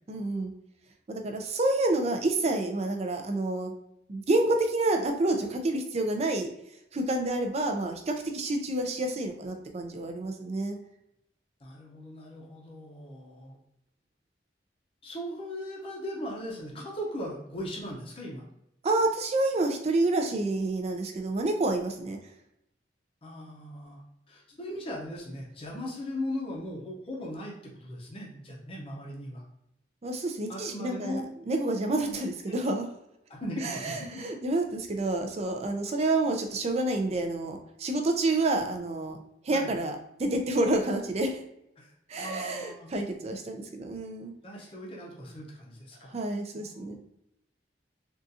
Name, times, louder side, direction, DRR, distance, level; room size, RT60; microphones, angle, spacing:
voice 1, 0.1-0.5 1.1-3.7 4.1-6.5 6.9-10.8 18.8-22.2 30.0-31.2 31.5-32.9 33.6-39.2 39.4-41.4 42.1-44.3 46.1-47.0, right 2 dB, 35° right, 4 dB, 0.4 m, -28 dB
voice 2, 11.6-13.6 15.0-18.4 23.2-27.5 27.8-29.4 30.5-31.2 32.1-32.2 32.5-32.6 33.3-34.1 39.5-39.7 41.8-41.9 42.2-42.9 44.4-46.1 46.5-47.0, left 1 dB, 30° left, -2 dB, 0.6 m, -38 dB
3.7 x 2.4 x 2.7 m, 0.81 s
head